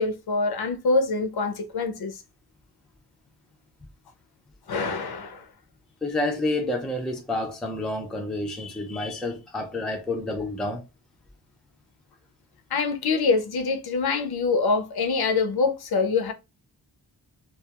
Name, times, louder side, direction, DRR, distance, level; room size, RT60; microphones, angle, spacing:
voice 1, 0.0-2.1 4.7-5.4 12.7-16.3, left 4 dB, 60° left, 0.6 m, -25 dB
voice 2, 6.0-10.8, left 2 dB, ahead, 0.3 m, -29 dB
2.3 x 2.3 x 2.8 m
wide cardioid pair, 165°, 43 cm